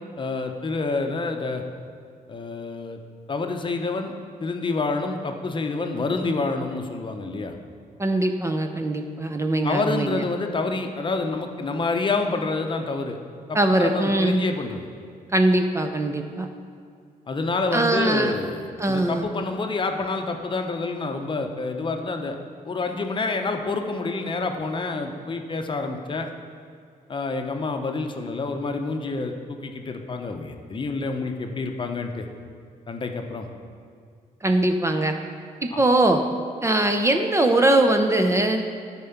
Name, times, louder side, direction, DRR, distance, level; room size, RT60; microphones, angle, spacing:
voice 1, 0.2-1.6 2.3-3.0 3.3-4.1 4.4-7.5 9.6-13.2 13.5-14.9 17.3-22.4 22.6-26.3 27.1-32.2 32.9-33.5, left 3 dB, 35° left, 4 dB, 0.7 m, -28 dB
voice 2, 8.0-10.2 13.5-14.4 15.3-16.5 17.7-18.3 18.8-19.3 34.4-35.1 35.6-36.2 36.6-38.6, right 2 dB, 20° right, 5 dB, 0.5 m, -21 dB
12.0 x 4.4 x 5.8 m, 2.2 s
cardioid pair, 115°, 15 cm